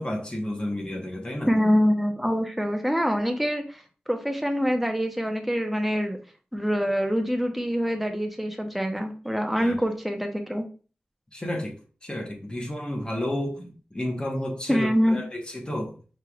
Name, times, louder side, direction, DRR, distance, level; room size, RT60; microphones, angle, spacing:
voice 1, 0.0-1.5 9.5-9.7 11.3-16.0, left 1 dB, 25° left, 1 dB, 1.2 m, -31 dB
voice 2, 1.5-3.8 4.1-6.2 6.5-10.6 14.7-15.2, equal, ahead, 4 dB, 0.8 m, -25 dB
5.6 x 3.3 x 2.4 m, 0.38 s
wide cardioid pair, 60°, 4 cm